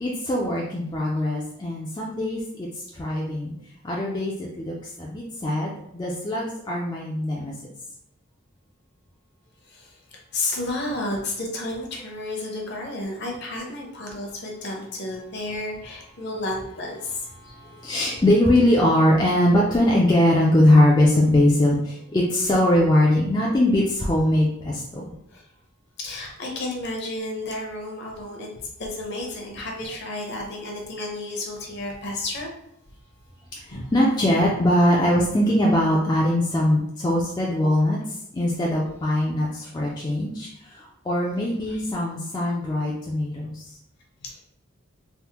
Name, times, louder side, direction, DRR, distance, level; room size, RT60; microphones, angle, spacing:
voice 1, 0.0-2.7 2.9-3.5 3.8-7.5 17.8-25.0 33.9-38.0 38.3-40.5 41.1-43.5, left 1 dB, 20° left, -3 dB, 0.4 m, -21 dB
voice 2, 9.7-17.3 25.3-25.4 26.0-32.5 33.7-33.8 39.6-39.7 41.7-41.8 44.2-44.4, left 2 dB, 55° left, 0 dB, 0.7 m, -32 dB
3.3 x 2.1 x 2.9 m, 0.74 s
head